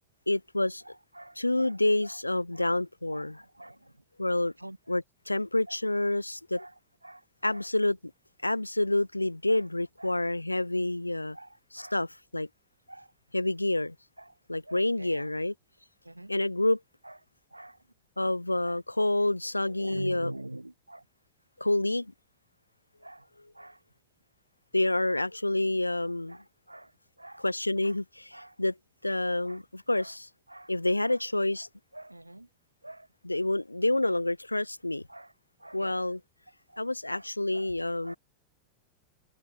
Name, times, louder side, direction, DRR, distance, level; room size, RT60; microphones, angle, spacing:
voice 1, 0.3-0.8 1.4-3.4 4.2-4.5 4.9-6.6 7.4-8.0 8.4-11.4 11.9-12.5 13.3-14.0 14.5-15.5 16.3-16.8 18.2-20.3 21.6-22.1 24.7-26.4 27.4-28.7 29.0-30.3 30.7-31.7 33.2-35.0 35.7-36.2 36.8-38.1, left 2 dB, 85° left, 0.3 m, -28 dB
voice 2, 0.8-2.2 2.5-2.7 3.1-4.0 4.6-5.0 5.7-5.8 6.5-7.7 9.5-9.6 10.0-10.2 11.3-12.0 12.9-13.1 14.2-14.4 14.6-15.3 16.0-16.3 17.0-17.2 17.5-17.8 18.7-18.8 19.4-21.1 23.0-23.3 23.5-23.8 26.3-27.5 27.8-28.0 28.3-28.6 29.4-29.6 29.9-30.1 30.5-30.7 31.0-31.2 31.6-32.5 32.8-33.1 35.1-35.3 35.6-36.2 36.7-37.7 38.0-38.2, right 1 dB, 85° right, 2.3 m, -46 dB
open air
figure-of-eight pair, 90°, 0 cm